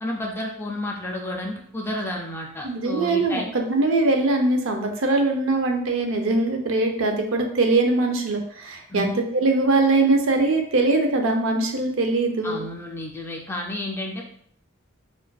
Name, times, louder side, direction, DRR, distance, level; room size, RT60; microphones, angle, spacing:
voice 1, 0.0-3.5 8.9-9.1 12.4-14.2, left 1 dB, 10° left, 0 dB, 0.4 m, -31 dB
voice 2, 2.6-12.6, right 2 dB, 70° right, 3 dB, 0.5 m, -22 dB
4.3 x 2.5 x 2.3 m, 0.64 s
head